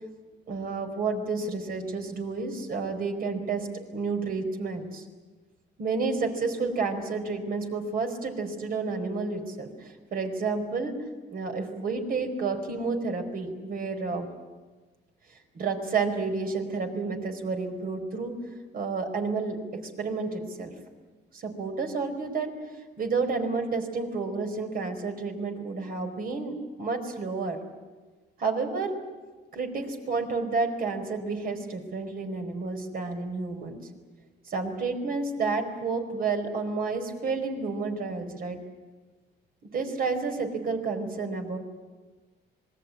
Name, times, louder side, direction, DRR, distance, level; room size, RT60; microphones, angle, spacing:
voice 1, 0.5-3.7 3.9-5.1 5.8-10.9 11.3-14.3 15.5-18.3 18.7-19.6 20.0-20.7 21.3-22.5 23.0-27.6 28.4-28.9 29.5-33.8 34.5-38.6 39.7-41.6, right 4 dB, 55° right, 5 dB, 4.6 m, -30 dB
26.0 x 21.5 x 8.6 m, 1.3 s
cardioid pair, 115°, 18 cm